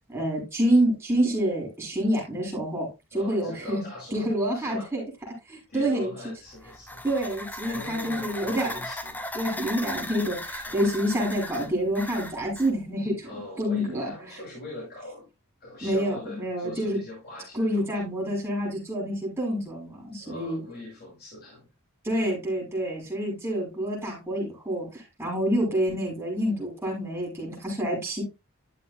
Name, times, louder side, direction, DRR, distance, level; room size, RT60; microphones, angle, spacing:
voice 1, 0.1-3.8 4.1-5.0 5.5-6.1 7.0-8.8 9.3-13.3 13.6-14.4 15.8-17.0 17.5-20.6 22.0-28.2, equal, 10° right, -4 dB, 6.7 m, -27 dB
voice 2, 3.1-4.3 4.5-4.9 5.7-7.0 7.6-9.2 10.7-10.8 13.2-15.2 15.6-17.9 20.2-21.7, left 2 dB, 50° left, -6 dB, 6.4 m, -42 dB
sound 1, 6.5-12.7, left 1 dB, 10° left, 0.8 m, -37 dB
12.5 x 7.8 x 2.3 m, 0.24 s
head